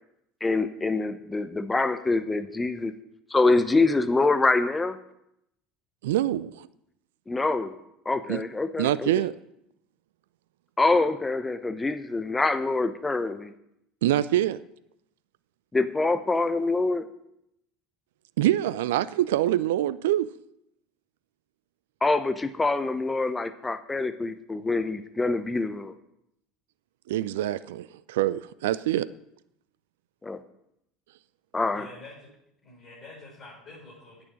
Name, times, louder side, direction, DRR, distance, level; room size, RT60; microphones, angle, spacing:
voice 1, 0.4-2.9 3.3-5.0 7.3-7.8 8.0-9.2 10.8-13.5 15.7-17.1 22.0-25.9 30.2-30.4 31.5-31.9, left 3 dB, 15° left, 0.9 m, -25 dB
voice 2, 6.0-6.7 8.3-8.4 8.8-9.3 14.0-14.6 18.4-20.3 27.1-29.1, right 13 dB, 70° right, 0.4 m, -25 dB
voice 3, 31.7-32.3 32.6-34.2, left 2 dB, 45° left, 5.9 m, -47 dB
10.5 x 9.1 x 6.4 m
hypercardioid pair, 70°, 0 cm